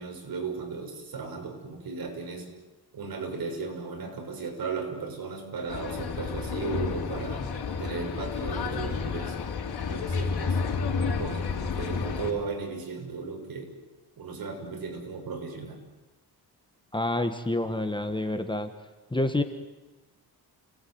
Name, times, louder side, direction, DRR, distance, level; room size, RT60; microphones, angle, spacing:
voice 1, 0.0-2.5 2.9-7.5 7.8-9.4 9.9-10.6 11.2-13.8 14.2-15.8, right 4 dB, 60° right, 3 dB, 6.7 m, -36 dB
sound 1, 5.7-12.3, left 5 dB, 70° left, 4.1 m, -31 dB
voice 2, 16.9-18.7 19.1-19.4, left 2 dB, 10° left, 7 dB, 1.5 m, -28 dB
29.5 x 19.5 x 9.6 m, 1.1 s
wide cardioid pair, 135°, 39 cm